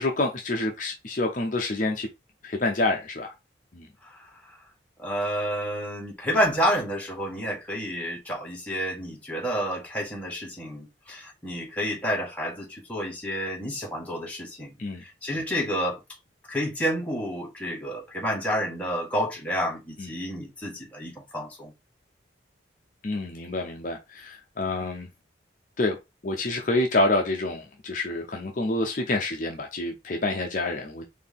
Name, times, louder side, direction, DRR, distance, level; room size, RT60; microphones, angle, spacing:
voice 1, 0.0-2.1 2.4-3.3 3.7-3.9 14.8-15.0 20.0-20.1 23.0-25.1 25.8-26.0 26.2-31.1, left 2 dB, 40° left, 0.6 m, -27 dB
voice 2, 5.0-14.7 15.0-16.0 16.5-21.7, equal, 5° left, 1.3 m, -29 dB
4.4 x 2.7 x 3.5 m
head